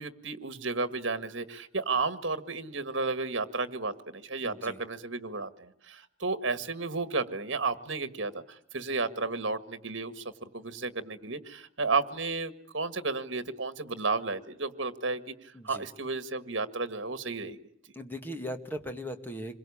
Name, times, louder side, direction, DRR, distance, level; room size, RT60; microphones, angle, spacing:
voice 1, 0.0-17.6, right 3 dB, 65° right, 11 dB, 1.7 m, -33 dB
voice 2, 4.4-4.8 15.5-15.9 17.9-19.6, equal, 10° left, 6 dB, 1.9 m, -38 dB
27.0 x 22.5 x 8.7 m, 0.66 s
head